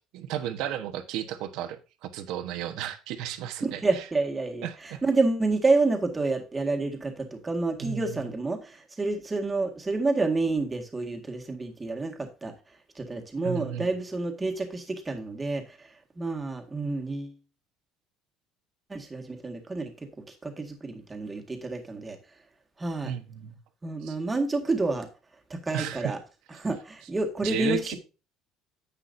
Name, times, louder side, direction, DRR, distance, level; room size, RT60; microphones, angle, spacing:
voice 1, 0.1-4.0 4.6-5.0 7.8-8.2 13.4-13.9 23.0-23.6 24.0-24.2 25.7-26.2 27.4-27.9, right 11 dB, 70° right, 1.2 m, -34 dB
voice 2, 3.6-12.5 13.0-15.9 16.2-17.3 18.9-19.9 20.3-22.2 22.8-23.1 23.8-25.1 25.5-26.2 26.6-27.9, right 3 dB, 15° right, 1.8 m, -29 dB
10.0 x 8.3 x 2.7 m
cardioid pair, 135°, 0 cm